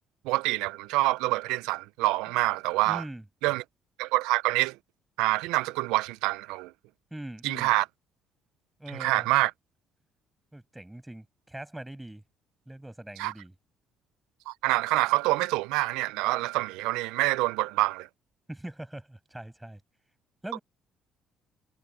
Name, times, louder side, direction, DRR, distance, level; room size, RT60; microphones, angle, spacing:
voice 1, 0.3-3.0 3.4-3.6 4.0-4.8 5.2-6.7 7.4-7.8 9.0-9.5 13.2-13.3 14.5-18.1, right 20 dB, 90° right, 0.4 m, -26 dB
voice 2, 2.8-3.2 7.1-7.7 8.8-9.3 10.5-12.2 12.7-13.5 18.5-19.8 20.4-20.6, right 1 dB, 10° right, 6.0 m, -41 dB
supercardioid pair, 75°, 0 cm